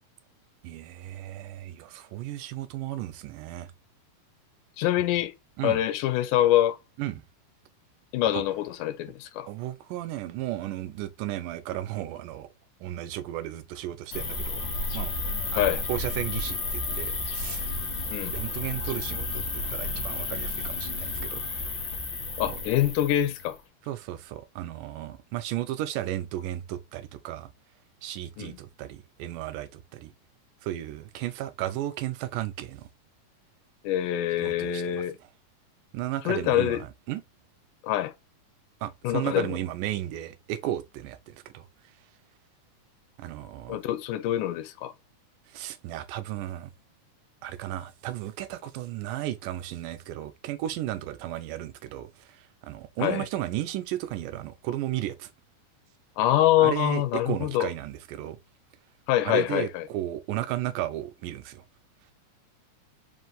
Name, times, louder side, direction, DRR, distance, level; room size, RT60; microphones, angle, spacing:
voice 1, 0.6-3.7 5.6-5.8 7.0-7.2 8.3-8.4 9.5-12.5 12.8-14.7 14.9-15.2 15.5-17.8 18.3-21.4 22.5-22.6 23.9-27.5 28.0-30.1 30.6-32.9 34.4-35.0 35.9-37.2 38.8-41.7 43.2-43.8 45.5-46.7 47.4-55.3 56.6-58.4 59.3-61.6, right 13 dB, 90° right, 2.2 m, -34 dB
voice 2, 4.8-5.3 5.6-6.8 8.1-9.5 15.6-15.8 18.1-18.3 22.4-23.6 28.4-28.6 33.8-35.2 36.3-36.8 37.8-38.1 39.0-39.6 43.7-44.9 53.0-53.3 56.2-57.7 59.1-59.9, left 13 dB, 90° left, 2.2 m, -25 dB
sound 1, 14.1-23.5, left 3 dB, 65° left, 0.9 m, -32 dB
4.9 x 2.7 x 3.8 m
omnidirectional pair, 3.7 m